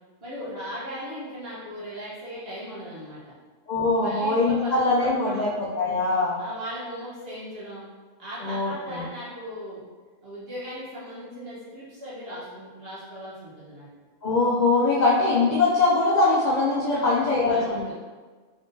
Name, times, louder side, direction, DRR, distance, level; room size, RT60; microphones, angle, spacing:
voice 1, 0.2-3.3 4.0-5.5 6.4-7.8 8.2-9.8 10.2-13.9 16.9-17.9, equal, 50° right, -9 dB, 1.3 m, -38 dB
voice 2, 3.7-5.5 5.8-6.4 8.4-9.0 14.2-17.8, left 3 dB, 80° left, -6 dB, 0.4 m, -22 dB
3.7 x 3.6 x 2.7 m, 1.4 s
omnidirectional pair, 1.4 m